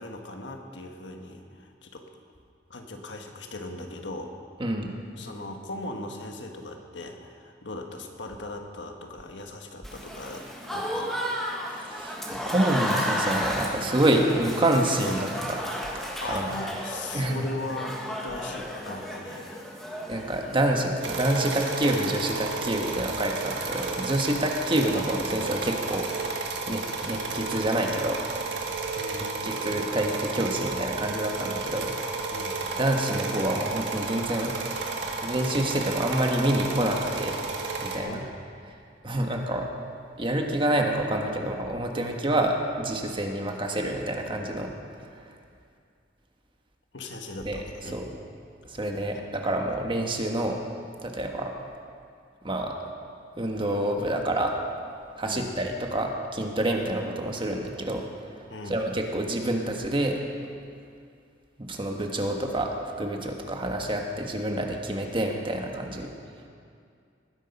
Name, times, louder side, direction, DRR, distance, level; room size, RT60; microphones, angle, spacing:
voice 1, 0.0-2.1 2.7-4.4 5.2-11.2 16.2-19.6 29.0-29.6 32.3-32.7 37.9-38.4 46.9-48.0 55.2-55.5 58.5-58.8, left 2 dB, 75° left, 3 dB, 1.5 m, -39 dB
Applause / Crowd, 9.8-20.7, equal, ahead, 1.8 m, -33 dB
voice 2, 11.8-15.6 16.3-16.5 17.1-17.4 20.1-26.1 26.7-28.2 29.4-31.9 32.8-34.5 35.2-37.4 37.8-38.2 39.0-39.7 40.2-44.7 47.4-47.6 47.9-48.1 48.7-50.6 51.0-51.5 52.4-52.7 53.4-54.6 55.2-58.0 58.3-60.2 61.6-66.1, right 1 dB, 30° right, 2 dB, 1.4 m, -27 dB
sound 1, 21.0-38.0, right 3 dB, 70° right, 1.7 m, -32 dB
19.5 x 10.5 x 5.4 m, 2.3 s
head